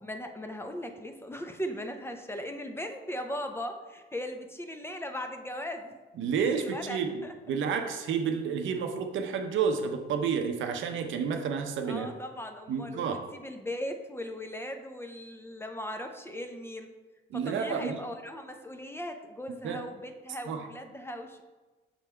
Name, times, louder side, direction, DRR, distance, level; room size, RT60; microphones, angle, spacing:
voice 1, 0.0-5.9 6.6-7.3 11.8-16.9 17.3-21.4, equal, 10° left, 5 dB, 0.6 m, -38 dB
voice 2, 6.2-12.1 12.7-13.2 17.3-18.0 19.6-19.8 20.5-20.6, right 6 dB, 75° right, 5 dB, 0.7 m, -30 dB
6.0 x 3.6 x 4.4 m, 1.2 s
cardioid pair, 90°, 20 cm